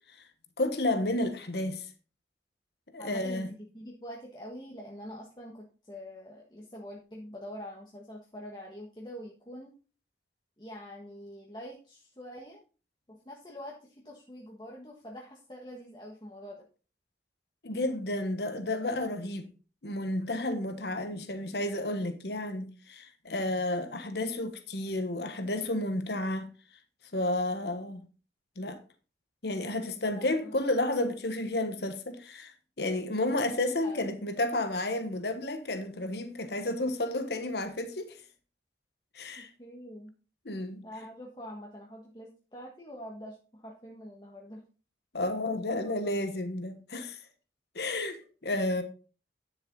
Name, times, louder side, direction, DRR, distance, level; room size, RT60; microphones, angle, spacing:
voice 1, 0.6-1.9 2.9-3.5 17.6-19.5 19.8-26.5 27.1-28.0 28.6-28.8 29.4-32.5 32.8-38.2 39.1-39.5 40.4-40.8 45.1-47.2 47.7-48.8, left 1 dB, 70° left, 1.3 m, -31 dB
voice 2, 3.0-9.7 10.6-12.6 13.1-16.6 30.1-30.6 30.9-31.1 33.1-33.5 33.8-34.2 39.4-40.1 40.8-44.6, equal, 25° left, 1.4 m, -45 dB
10.5 x 7.0 x 4.0 m
head